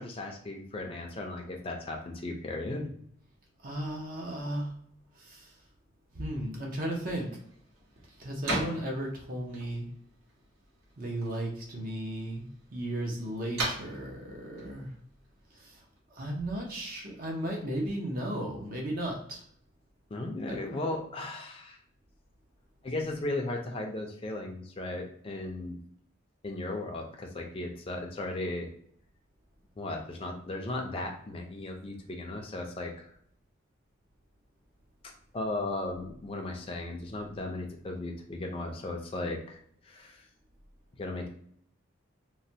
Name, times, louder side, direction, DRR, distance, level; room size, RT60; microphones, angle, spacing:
voice 1, 0.0-2.9 20.1-21.8 22.8-25.8 26.4-28.7 29.8-33.0 35.3-39.6 39.9-40.2 41.0-41.3, left 2 dB, 25° left, 1 dB, 0.4 m, -36 dB
voice 2, 3.6-4.7 6.2-7.3 8.2-9.9 11.0-12.4 12.7-14.9 16.2-19.4 20.5-20.6, right 1 dB, 45° right, -1 dB, 0.6 m, -35 dB
sound 1, 6.8-16.0, right 1 dB, 85° right, 1.2 m, -41 dB
3.1 x 2.2 x 2.7 m, 0.65 s
head